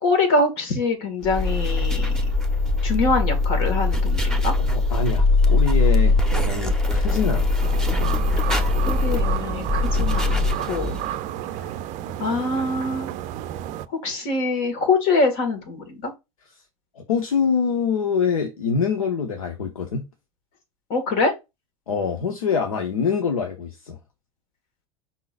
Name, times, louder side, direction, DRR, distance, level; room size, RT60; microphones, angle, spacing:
voice 1, 0.0-2.1 2.8-4.5 8.8-11.0 12.2-13.1 14.0-16.1 20.9-21.3, left 3 dB, 55° left, 2.0 m, -24 dB
sound 1, 1.2-11.1, left 3 dB, 5° left, 1.0 m, -21 dB
voice 2, 4.6-7.6 7.9-8.3 17.0-20.0 21.9-24.0, left 6 dB, 80° left, 0.9 m, -25 dB
sound 2, 7.6-13.9, right 12 dB, 45° right, 0.5 m, -31 dB
5.5 x 3.8 x 2.5 m
hypercardioid pair, 80°, 18 cm